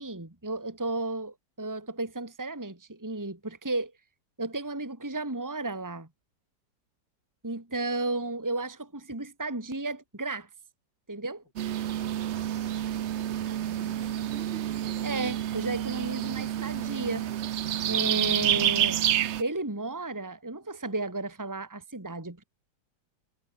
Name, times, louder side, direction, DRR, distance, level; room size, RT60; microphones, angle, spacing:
voice 1, 0.0-3.9 4.4-6.1 7.4-10.5 11.1-11.4 15.0-17.3 17.9-19.0 19.4-22.4, right 2 dB, 10° right, 2.4 m, -33 dB
sound 1, 11.6-19.4, right 11 dB, 70° right, 0.6 m, -29 dB
voice 2, 12.2-15.1, left 2 dB, 90° left, 8.4 m, -53 dB
omnidirectional pair, 1.9 m